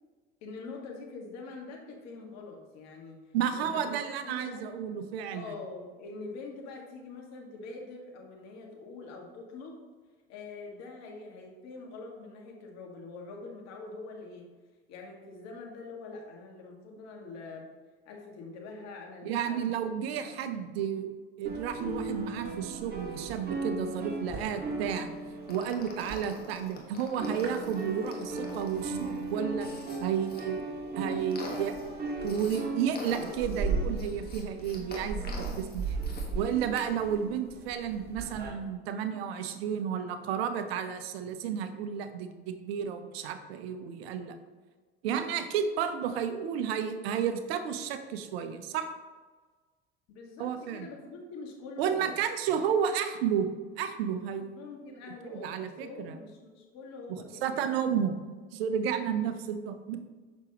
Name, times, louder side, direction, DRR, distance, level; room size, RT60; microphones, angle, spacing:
voice 1, 0.4-3.2 3.5-3.9 4.2-4.7 5.3-9.8 10.3-14.4 14.9-17.7 18.1-19.7 20.2-20.6 50.1-52.1 54.4-57.6, left 3 dB, 60° left, 0 dB, 1.7 m, -44 dB
voice 2, 3.3-5.5 19.2-21.1 21.4-25.1 25.5-29.7 30.0-30.7 31.0-31.8 32.2-36.0 36.3-44.4 45.0-48.9 50.4-50.9 51.8-54.6 55.2-56.2 57.1-58.2 58.5-60.0, right 8 dB, 75° right, 9 dB, 0.7 m, -32 dB
sound 1, 21.5-26.8 27.0-38.5, right 3 dB, 30° right, 1.7 m, -36 dB
sound 2, 25.5-30.4 30.9-32.6 32.9-36.3 36.6-36.9, left 3 dB, 30° left, 1.4 m, -45 dB
6.7 x 6.0 x 2.9 m, 1.4 s
hypercardioid pair, 80°, 31 cm